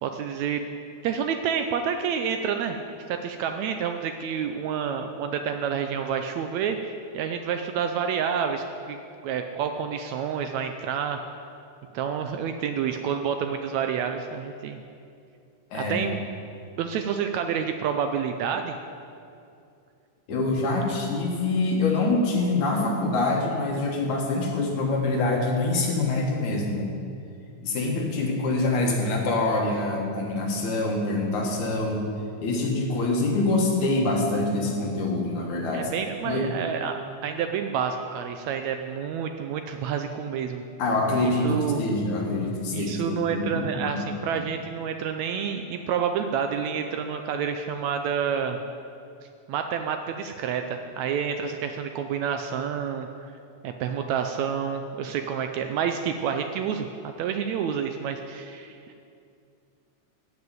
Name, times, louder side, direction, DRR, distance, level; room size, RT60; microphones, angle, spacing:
voice 1, 0.0-0.7 1.0-9.0 9.2-11.2 11.9-14.8 15.7-16.2 16.8-18.8 35.7-40.6 41.2-41.8 42.7-48.6 49.5-53.3 53.6-58.8, right 7 dB, 75° right, 6 dB, 1.7 m, -29 dB
voice 2, 15.7-16.1 20.3-26.9 27.6-32.1 32.4-35.9 36.3-36.5 40.8-44.0 44.3-44.4, left 2 dB, 70° left, 0 dB, 3.0 m, -25 dB
14.0 x 6.0 x 9.0 m, 2.5 s
omnidirectional pair, 3.6 m